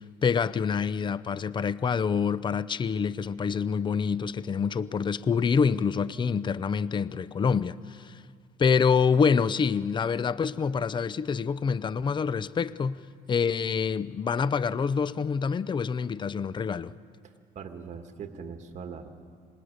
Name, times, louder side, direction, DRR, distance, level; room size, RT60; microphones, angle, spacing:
voice 1, 0.0-8.2 8.6-13.0 13.3-17.0, left 6 dB, 30° left, 0.5 m, -26 dB
voice 2, 17.2-19.1, right 6 dB, 45° right, 1.6 m, -41 dB
26.0 x 20.5 x 6.6 m
cardioid pair, 110°, 17 cm